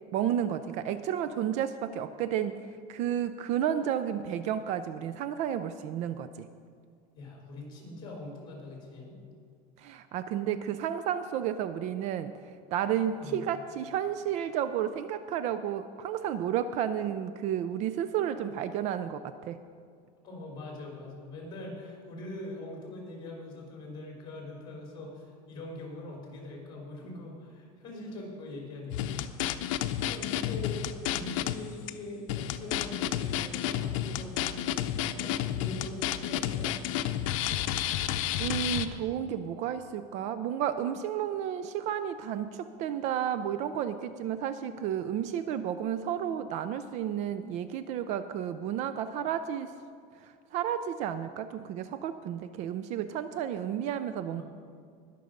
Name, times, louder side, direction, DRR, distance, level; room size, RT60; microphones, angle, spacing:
voice 1, 0.1-6.5 9.8-19.6 38.4-49.7 50.2-54.4, right 9 dB, 45° right, 12 dB, 0.4 m, -32 dB
voice 2, 7.2-9.2 13.1-13.4 20.2-29.5 30.0-30.8 31.0-37.0 54.3-54.4, left 2 dB, 25° left, -1 dB, 3.9 m, -43 dB
sound 1, 28.9-31.6 31.9-32.0 32.3-38.9, left 11 dB, 85° left, 0.6 m, -31 dB
20.0 x 6.7 x 5.2 m, 2.2 s
cardioid pair, 155°, 17 cm